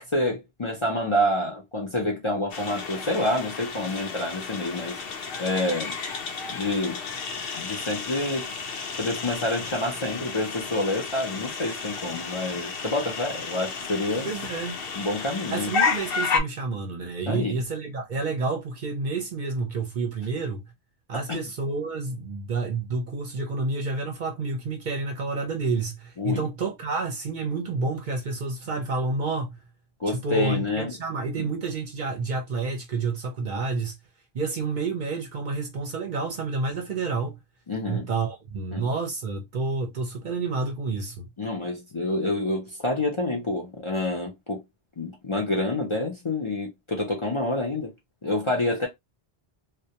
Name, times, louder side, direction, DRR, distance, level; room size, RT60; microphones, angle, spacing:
voice 1, 0.0-5.0 5.4-5.9 6.5-7.0 7.5-8.5 9.0-14.3 14.9-15.7 17.3-17.5 21.3-21.4 26.2-26.5 30.0-31.0 31.4-31.5 37.7-38.1 38.7-38.9 41.4-44.6 45.0-47.9 48.2-48.9, left 1 dB, 35° left, 0.5 m, -28 dB
sound 1, 2.5-16.4, left 5 dB, 70° left, 0.8 m, -32 dB
voice 2, 14.2-14.8 15.5-20.7 21.1-29.6 30.1-34.0 34.3-37.4 37.8-41.3, right 3 dB, 55° right, 0.7 m, -29 dB
2.2 x 2.2 x 2.7 m
omnidirectional pair, 1.1 m